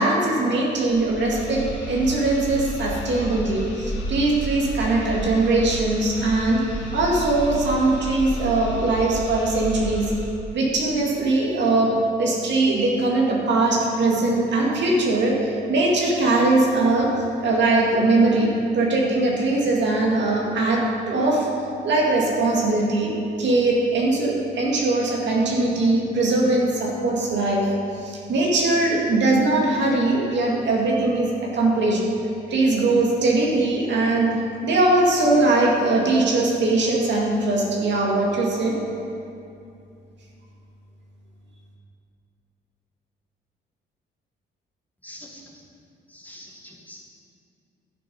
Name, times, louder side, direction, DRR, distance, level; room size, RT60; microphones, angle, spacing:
voice 1, 0.0-6.6 6.9-10.1 10.5-11.9 12.2-17.1 17.4-18.5 18.7-21.5 21.8-32.0 32.5-34.3 34.6-38.8, right 2 dB, 65° right, -2 dB, 2.3 m, -21 dB
sound 1, 0.8-10.4, equal, 70° left, 1.7 m, -32 dB
voice 2, 45.0-45.4 46.1-47.1, left 1 dB, 10° left, -3 dB, 1.9 m, -44 dB
11.5 x 7.0 x 5.5 m, 2.6 s
cardioid pair, 90°, 20 cm